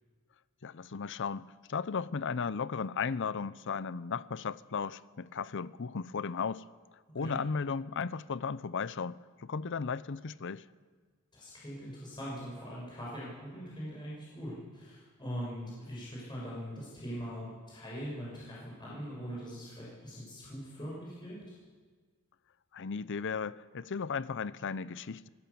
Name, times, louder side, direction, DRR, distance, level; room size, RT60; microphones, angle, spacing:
voice 1, 0.6-6.6 7.1-10.6 22.7-25.3, left 5 dB, 55° left, 17 dB, 0.6 m, -35 dB
voice 2, 11.3-21.4, equal, 20° left, -6 dB, 6.6 m, -42 dB
24.0 x 16.5 x 7.0 m, 1.5 s
head